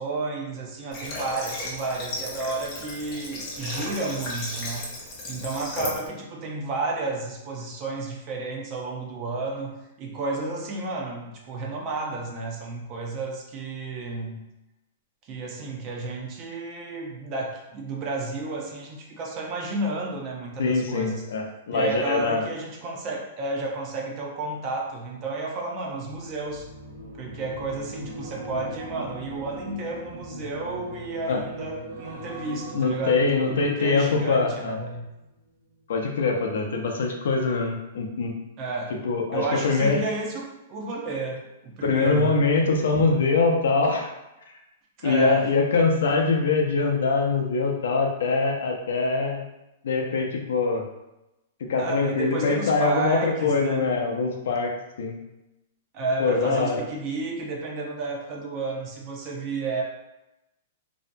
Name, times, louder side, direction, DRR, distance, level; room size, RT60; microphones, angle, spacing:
voice 1, 0.0-4.9 5.2-14.4 15.2-21.2 21.7-26.7 27.2-35.0 38.6-39.0 39.3-42.4 45.0-45.5 51.8-53.9 55.9-59.8, right 3 dB, 30° right, -1 dB, 0.5 m, -31 dB
Water / Water tap faucet, 0.9-6.1, left 2 dB, 30° left, 0.6 m, -35 dB
voice 2, 20.6-22.4 31.3-31.4 32.7-34.8 35.9-38.3 39.0-40.0 41.8-44.1 45.0-49.4 49.8-50.8 51.7-55.2 56.2-56.8, left 4 dB, 80° left, 2 dB, 0.5 m, -23 dB
sound 1, 26.0-35.4 35.7-36.0, right 1 dB, 90° right, 0.5 m, -40 dB
2.6 x 2.2 x 2.5 m, 0.94 s
hypercardioid pair, 160°, 0 cm